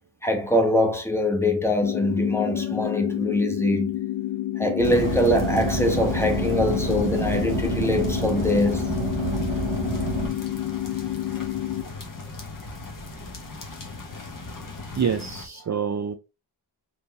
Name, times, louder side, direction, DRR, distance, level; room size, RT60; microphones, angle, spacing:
voice 1, 0.2-3.9 4.6-8.9, left 1 dB, 5° left, 1.1 m, -23 dB
sound 1, 1.8-11.8, left 13 dB, 75° left, 0.6 m, -29 dB
sound 2, 4.8-15.5, left 3 dB, 45° left, 1.4 m, -39 dB
Car, 4.8-10.3, right 5 dB, 80° right, 1.0 m, -29 dB
voice 2, 15.0-16.2, right 7 dB, 40° right, 0.5 m, -26 dB
4.4 x 3.4 x 2.9 m
wide cardioid pair, 120°, 45 cm